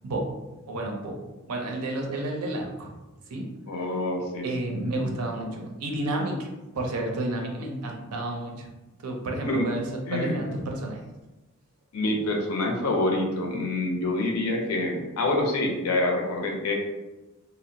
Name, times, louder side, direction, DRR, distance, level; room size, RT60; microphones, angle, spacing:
voice 1, 0.7-1.2 1.5-2.9 3.3-3.5 4.4-6.5 6.8-8.7 9.0-11.1, right 1 dB, 85° right, 2 dB, 0.5 m, -31 dB
voice 2, 3.7-4.4 9.4-9.7 10.1-10.4 11.9-16.7, left 2 dB, 75° left, 1 dB, 0.5 m, -26 dB
2.7 x 2.0 x 2.6 m, 1.1 s
head